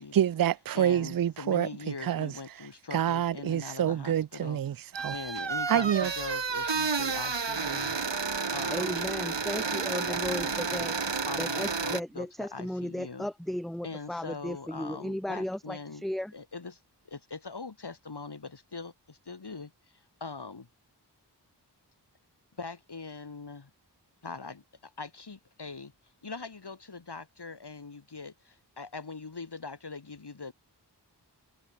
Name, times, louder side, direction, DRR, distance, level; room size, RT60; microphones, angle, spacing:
voice 1, 0.1-1.7 2.0-2.3 2.9-5.1 5.7-6.1, right 10 dB, 55° right, 0.5 m, -27 dB
voice 2, 0.7-4.6 5.1-8.0 8.5-9.1 9.9-10.9 11.3-13.3 13.8-16.0 16.3-16.8 17.1-20.7 22.6-23.7 24.2-25.9 26.2-30.5, left 4 dB, 65° left, 2.0 m, -42 dB
sound 1, 4.9-12.0, right 5 dB, 85° right, 1.8 m, -31 dB
voice 3, 8.7-10.9 11.4-16.3, left 1 dB, ahead, 0.9 m, -35 dB
wide cardioid pair, 40°, 42 cm